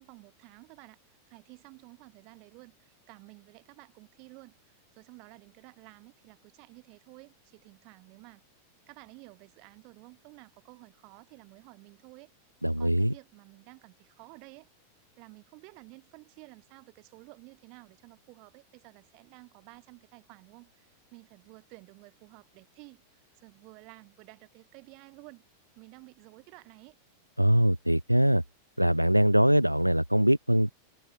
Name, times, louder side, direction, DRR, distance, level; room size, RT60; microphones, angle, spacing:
voice 1, 0.0-8.4 8.9-12.3 12.8-14.7 15.2-25.4 25.7-27.0, right 31 dB, 45° right, 4.9 m, -53 dB
voice 2, 12.6-13.1 27.4-28.4 28.8-30.7, equal, 90° right, 0.3 m, -22 dB
figure-of-eight pair, 90°, 0 cm